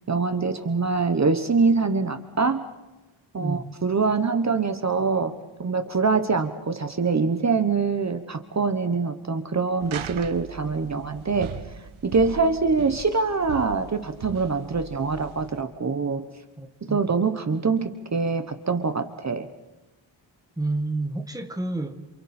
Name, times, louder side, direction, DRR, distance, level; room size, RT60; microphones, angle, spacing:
voice 1, 0.1-2.6 3.3-5.3 5.6-11.5 12.0-16.2 16.9-19.5, right 4 dB, 35° right, 1.2 m, -24 dB
sound 1, 9.8-15.6, right 8 dB, 85° right, 1.2 m, -39 dB
voice 2, 16.6-17.0 20.6-22.0, right 2 dB, 10° right, 1.5 m, -29 dB
29.0 x 27.5 x 4.4 m
wide cardioid pair, 150°, 47 cm